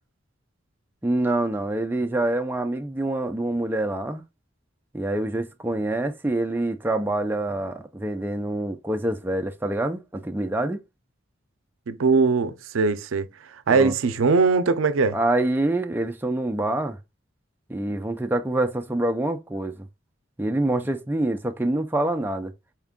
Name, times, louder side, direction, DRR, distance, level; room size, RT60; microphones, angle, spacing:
voice 1, 1.0-4.2 4.9-10.8 13.7-13.9 15.1-17.0 17.7-19.9 20.4-22.5, right 1 dB, 10° right, 0.4 m, -26 dB
voice 2, 11.9-13.3 13.7-15.2, right 4 dB, 85° right, 0.5 m, -20 dB
4.4 x 2.3 x 3.6 m
head